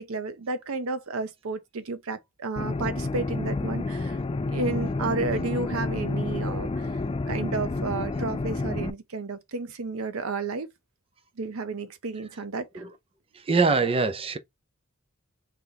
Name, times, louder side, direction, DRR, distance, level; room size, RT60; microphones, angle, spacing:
voice 1, 0.0-4.2 4.5-6.9 7.3-10.7 11.4-12.8, right 3 dB, 90° right, 0.7 m, -32 dB
sound 1, 2.6-8.9, left 3 dB, 25° left, 0.4 m, -29 dB
voice 2, 13.3-14.4, right 4 dB, 25° right, 0.5 m, -23 dB
3.3 x 2.9 x 3.8 m
head